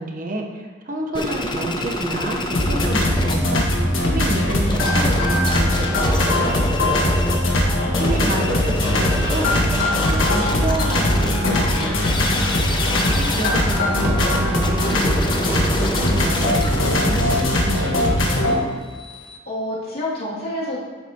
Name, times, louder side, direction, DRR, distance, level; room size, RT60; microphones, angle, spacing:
voice 1, 0.0-7.3 8.0-12.3 13.1-18.7, right 1 dB, 45° right, 2 dB, 1.0 m, -29 dB
sound 1, 1.1-3.3 3.6-7.4 7.8-19.4, left 1 dB, 25° left, 0.8 m, -28 dB
sound 2, 2.5-18.6, left 1 dB, 85° left, 1.5 m, -20 dB
voice 2, 7.6-8.2 19.5-20.8, left 1 dB, 50° left, -7 dB, 2.7 m, -29 dB
10.0 x 8.1 x 3.0 m, 1.5 s
head